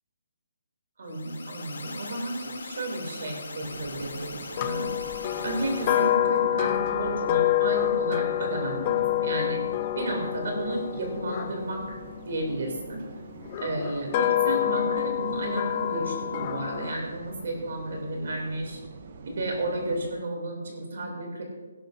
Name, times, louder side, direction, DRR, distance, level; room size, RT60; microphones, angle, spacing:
voice 1, 1.0-4.9 5.4-9.6 9.9-12.0 12.2-13.0 13.6-18.8 19.3-21.4, right 1 dB, 50° right, 1 dB, 2.7 m, -32 dB
sound 1, 1.1-6.2, left 3 dB, 75° left, 2.7 m, -41 dB
sound 2, 3.6-20.1, right 4 dB, 30° right, 0.8 m, -45 dB
sound 3, 4.6-12.7 13.5-16.9, left 12 dB, 20° left, 0.3 m, -27 dB
18.0 x 12.0 x 2.6 m, 1.3 s
hypercardioid pair, 180°, 0 cm